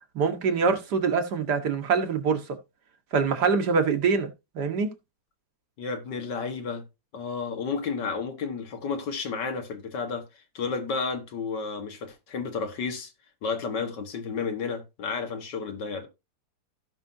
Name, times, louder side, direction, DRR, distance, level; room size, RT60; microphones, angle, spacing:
voice 1, 0.2-2.4 3.1-4.3 4.6-4.9, right 5 dB, 75° right, 1.9 m, -24 dB
voice 2, 5.8-6.8 7.1-10.3 10.5-13.1 13.4-16.1, left 5 dB, 90° left, 2.1 m, -32 dB
16.5 x 5.6 x 2.7 m
omnidirectional pair, 1.8 m